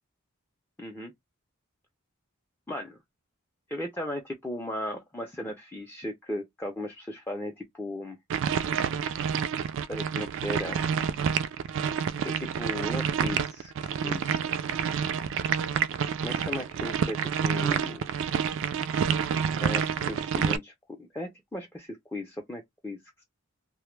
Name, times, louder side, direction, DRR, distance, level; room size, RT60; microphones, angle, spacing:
voice 1, 0.8-1.1 2.7-3.0 3.7-8.2 9.9-10.8 12.2-14.4 16.2-18.0 19.6-23.0, left 1 dB, 10° left, 0.4 m, -36 dB
sound 1, 8.3-20.6, right 7 dB, 60° right, 0.3 m, -28 dB
2.1 x 2.0 x 3.1 m
head